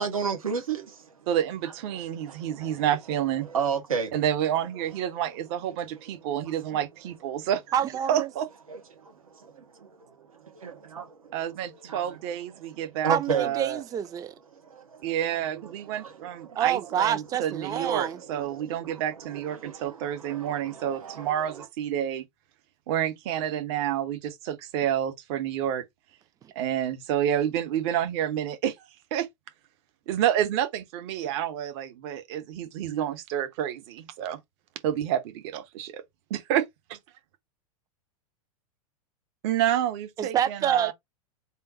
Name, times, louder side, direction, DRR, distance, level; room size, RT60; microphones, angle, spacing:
voice 1, 0.0-1.1 2.3-2.8 3.4-4.1 6.7-6.8 8.7-11.4 11.9-12.0 12.8-13.5 14.6-15.1 15.9-16.6 17.7-19.0 19.3-21.7, right 6 dB, 75° right, 1.3 m, -34 dB
voice 2, 1.3-3.5 4.1-7.6 8.1-8.5 11.3-13.8 15.0-22.2 22.9-25.8 26.5-28.8 29.1-29.3 30.1-34.4 34.8-36.0 36.3-37.0 39.4-40.9, right 10 dB, 50° right, 1.1 m, -29 dB
voice 3, 7.7-8.3 13.1-14.3 16.5-18.2 40.2-40.9, right 10 dB, 20° right, 0.4 m, -27 dB
3.7 x 2.6 x 4.1 m
figure-of-eight pair, 95°, 18 cm